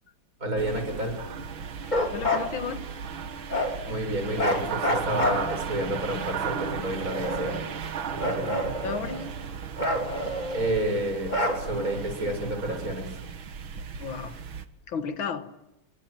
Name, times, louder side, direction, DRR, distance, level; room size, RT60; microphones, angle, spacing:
voice 1, 0.4-1.2 3.9-7.6 8.1-8.6 10.5-13.2, right 1 dB, 45° right, 6 dB, 6.6 m, -30 dB
sound 1, 0.6-14.6, right 7 dB, 80° right, 2.3 m, -36 dB
Bark, 1.8-2.5 3.5-3.8 4.4-5.8 6.6-7.7 8.2-9.3 9.8-10.8 11.3-12.0, left 1 dB, 20° left, 3.3 m, -28 dB
voice 2, 2.1-2.9 8.8-9.4 14.0-14.4 14.9-15.6, left 6 dB, 80° left, 10 dB, 2.3 m, -34 dB
29.0 x 22.5 x 9.1 m, 0.95 s
omnidirectional pair, 2.2 m